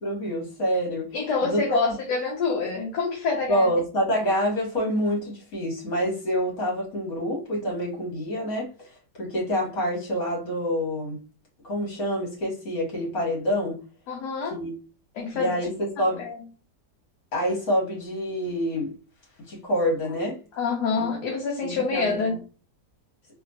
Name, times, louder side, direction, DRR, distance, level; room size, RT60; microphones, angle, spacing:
voice 1, 0.0-1.1 1.4-1.8 3.5-8.7 9.2-11.2 11.6-13.8 14.5-14.7 15.3-16.3 17.3-18.9 19.5-20.4 21.0-21.1 21.6-22.4, equal, 55° left, 2.3 m, -27 dB
voice 2, 1.1-3.7 14.1-14.6 15.1-15.6 16.2-16.4 20.5-22.4, left 4 dB, 75° left, 1.4 m, -27 dB
3.6 x 3.2 x 2.6 m
omnidirectional pair, 1.8 m